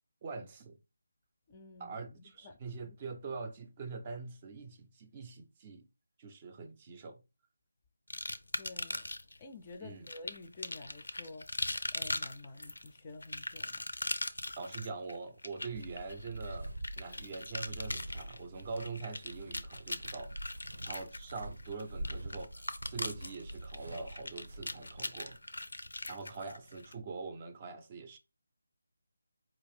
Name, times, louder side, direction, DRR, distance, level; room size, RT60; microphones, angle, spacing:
voice 1, 0.2-0.8 1.8-5.9 6.2-7.2 9.8-10.1 14.6-20.3 20.8-25.4 26.1-28.2, right 4 dB, 25° right, 0.5 m, -43 dB
voice 2, 1.5-2.6 8.5-9.0 9.4-11.5 11.9-13.9, left 3 dB, 25° left, 0.4 m, -50 dB
sound 1, 8.1-9.4 10.1-26.9, left 2 dB, 85° left, 0.5 m, -40 dB
Walk footsteps, 15.7-25.4, right 1 dB, 85° right, 0.6 m, -46 dB
4.7 x 2.5 x 3.5 m
figure-of-eight pair, 160°, 0 cm